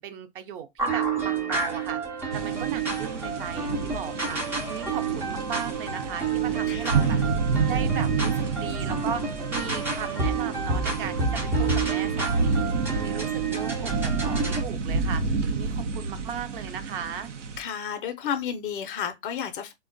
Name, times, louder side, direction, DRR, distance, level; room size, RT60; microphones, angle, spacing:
voice 1, 0.0-7.2 7.6-17.3, right 8 dB, 50° right, 0.6 m, -37 dB
sound 1, 0.8-14.6, right 5 dB, 5° right, 0.3 m, -29 dB
sound 2, 2.3-17.6, right 4 dB, 85° right, 0.7 m, -29 dB
voice 2, 6.7-7.3 17.6-19.7, left 8 dB, 45° left, 0.5 m, -32 dB
3.6 x 2.2 x 2.5 m
hypercardioid pair, 110°, 35 cm